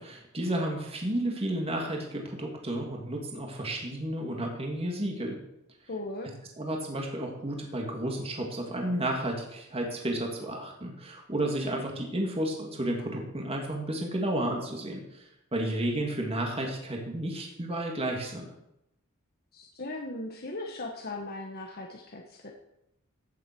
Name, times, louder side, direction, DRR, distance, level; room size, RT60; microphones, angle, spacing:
voice 1, 0.0-5.4 6.6-15.2 15.5-18.5, right 1 dB, 30° right, 1 dB, 2.5 m, -32 dB
voice 2, 5.9-6.3 19.5-22.5, left 2 dB, 45° left, 1 dB, 1.4 m, -38 dB
16.0 x 7.6 x 6.1 m, 0.83 s
head